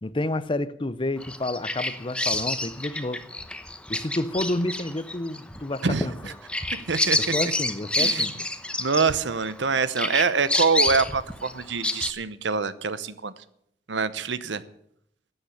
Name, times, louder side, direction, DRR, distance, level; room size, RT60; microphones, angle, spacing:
voice 1, 0.0-3.2 3.9-6.1 7.2-8.3, left 2 dB, 30° left, 0.7 m, -29 dB
Bird vocalization bird call bird song, 1.2-9.6 10.0-12.1, left 1 dB, 5° left, 0.9 m, -28 dB
voice 2, 5.8-6.3 6.9-7.3 8.0-8.3 8.8-13.3 13.9-14.6, right 4 dB, 80° right, 0.9 m, -25 dB
13.0 x 8.9 x 9.8 m
head